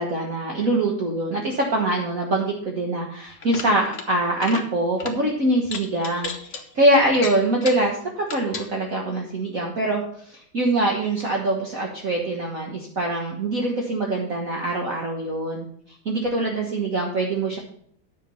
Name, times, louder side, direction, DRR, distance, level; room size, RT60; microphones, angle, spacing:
voice 1, 0.0-15.6 16.0-17.6, right 1 dB, 45° right, 0 dB, 1.6 m, -24 dB
sound 1, 3.3-4.1 4.3-4.7 5.0-5.2 5.6-6.6 7.1-7.9 8.2-8.7, left 4 dB, 40° left, 1.4 m, -33 dB
10.5 x 6.8 x 5.5 m, 0.65 s
omnidirectional pair, 2.3 m